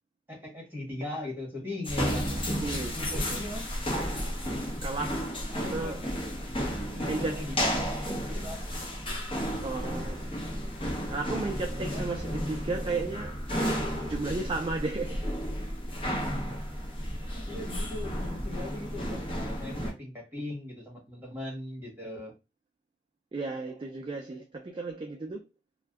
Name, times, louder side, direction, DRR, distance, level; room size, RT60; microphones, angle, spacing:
voice 1, 0.3-2.3 2.9-3.7 5.5-6.0 6.6-7.6 8.1-8.7 11.8-12.0 16.2-16.7 17.2-22.3, left 1 dB, 10° right, 1.2 m, -40 dB
sound 1, 1.8-19.9, equal, 30° left, 1.0 m, -32 dB
voice 2, 2.6-3.0 4.8-5.4 5.7-6.1 7.0-7.5 9.6-10.3 11.1-13.4 14.1-15.3 23.3-25.4, right 3 dB, 25° right, 0.3 m, -34 dB
2.6 x 2.1 x 3.4 m
head